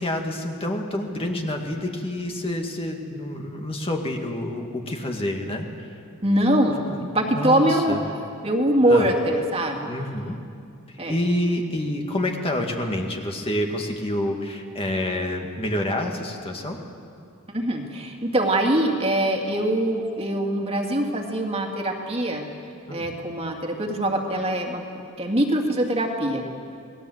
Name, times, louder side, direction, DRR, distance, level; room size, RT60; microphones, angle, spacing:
voice 1, 0.0-5.9 6.9-7.0 7.3-8.0 8.9-9.1 9.9-10.4 10.9-16.8 22.9-23.1, left 1 dB, 25° left, 2 dB, 1.9 m, -28 dB
voice 2, 6.2-6.8 7.1-8.0 8.4-10.2 11.0-11.1 17.5-22.5 22.9-24.8 25.2-26.5, right 1 dB, 25° right, 1 dB, 2.4 m, -23 dB
28.0 x 20.0 x 7.9 m, 2.4 s
head